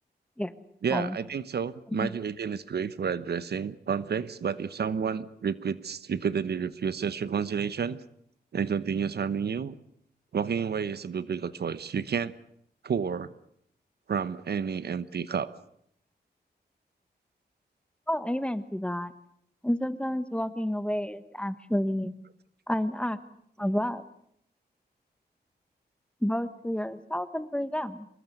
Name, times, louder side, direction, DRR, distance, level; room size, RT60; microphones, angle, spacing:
voice 1, 0.8-8.0 8.5-9.7 10.3-12.3 12.8-13.3 14.1-15.5, right 6 dB, 70° right, 15 dB, 1.0 m, -30 dB
voice 2, 18.1-19.1 19.6-22.1 22.7-23.2 23.6-24.0 26.2-28.1, equal, 5° left, 12 dB, 1.3 m, -30 dB
24.5 x 21.0 x 8.0 m, 0.71 s
wide cardioid pair, 110°, 18 cm